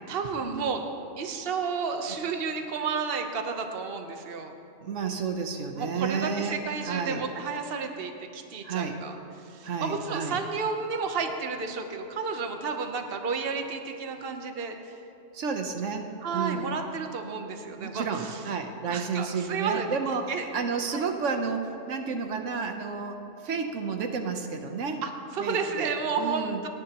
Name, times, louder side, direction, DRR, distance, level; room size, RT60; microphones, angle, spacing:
voice 1, 0.1-0.8 1.2-4.5 5.8-9.2 9.4-14.9 16.2-18.4 18.9-19.9 20.3-20.5 20.9-21.1 25.0-26.7, right 5 dB, 55° right, 5 dB, 1.1 m, -32 dB
voice 2, 4.8-6.6 6.9-7.2 8.6-9.0 9.6-10.4 15.3-16.1 16.3-16.7 17.8-25.0 25.4-25.9 26.2-26.6, right 5 dB, 80° right, 5 dB, 1.2 m, -31 dB
28.5 x 10.5 x 3.0 m, 2.8 s
omnidirectional pair, 1.2 m